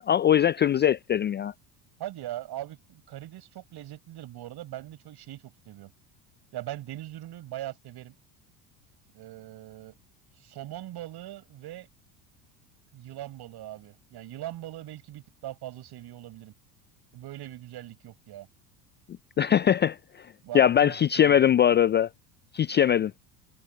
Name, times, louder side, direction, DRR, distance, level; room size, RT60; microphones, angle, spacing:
voice 1, 0.1-1.5 19.4-20.0 20.5-22.1 22.5-23.1, left 9 dB, 25° left, 0.4 m, -21 dB
voice 2, 2.0-5.9 6.5-8.1 9.1-10.0 10.4-11.9 12.9-16.5 17.1-18.5 20.4-21.4, right 14 dB, 50° right, 7.9 m, -40 dB
hypercardioid pair, 75°, 48 cm